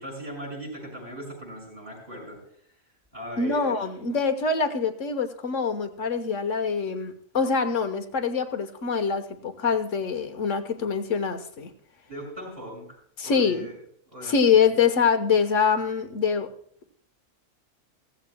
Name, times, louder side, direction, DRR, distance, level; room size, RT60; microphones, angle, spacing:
voice 1, 0.0-2.4 3.1-3.9 12.1-13.0 13.2-13.8 14.1-14.3, equal, 30° right, -2 dB, 6.6 m, -38 dB
voice 2, 3.4-11.7 13.2-13.7 14.2-16.5, left 6 dB, 60° left, 8 dB, 1.5 m, -24 dB
16.0 x 15.0 x 2.3 m, 0.65 s
omnidirectional pair, 1.5 m